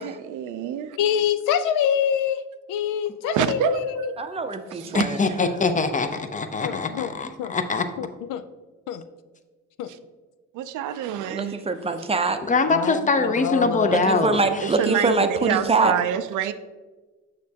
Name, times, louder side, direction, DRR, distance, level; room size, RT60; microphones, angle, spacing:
voice 1, 0.0-1.0 3.3-4.1 4.7-5.0 10.5-11.6 14.6-16.5, right 10 dB, 80° right, 12 dB, 0.5 m, -27 dB
voice 2, 1.0-2.4 2.7-4.1 6.6-7.1 7.4-7.6 8.0-8.4 8.9-9.1 9.8-9.9 12.7-14.0, left 8 dB, 85° left, 12 dB, 0.5 m, -25 dB
voice 3, 4.2-5.2 11.3-12.4 13.9-15.9, right 3 dB, 20° right, 8 dB, 0.5 m, -24 dB
voice 4, 4.9-7.9 12.4-14.7, left 3 dB, 25° left, 8 dB, 0.6 m, -23 dB
6.5 x 6.2 x 2.8 m, 1.3 s
cardioid pair, 90°, 30 cm